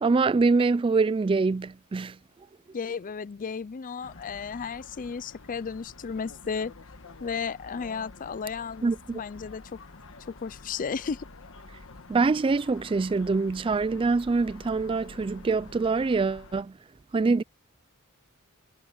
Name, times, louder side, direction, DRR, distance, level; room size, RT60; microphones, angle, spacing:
voice 1, 0.0-2.2 8.8-9.2 12.1-16.7 17.1-17.4, right 4 dB, 25° right, 0.3 m, -24 dB
voice 2, 2.7-6.7 7.2-9.8 10.3-11.3, left 5 dB, 40° left, 0.4 m, -34 dB
sound 1, 4.0-16.6, left 3 dB, 65° left, 1.4 m, -48 dB
head